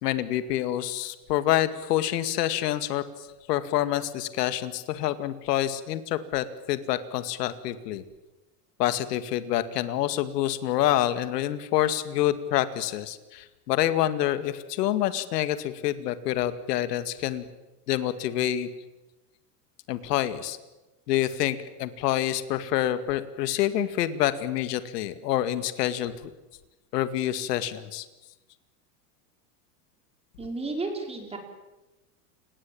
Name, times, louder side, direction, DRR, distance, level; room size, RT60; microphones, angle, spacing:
voice 1, 0.0-3.0 3.5-8.0 8.8-17.5 17.9-18.7 19.9-20.6 21.1-26.1 26.9-28.1, left 12 dB, 80° left, 11 dB, 2.2 m, -27 dB
voice 2, 30.4-31.4, right 3 dB, 10° right, 3 dB, 5.1 m, -32 dB
30.0 x 19.0 x 8.8 m, 1.1 s
supercardioid pair, 145°, 47 cm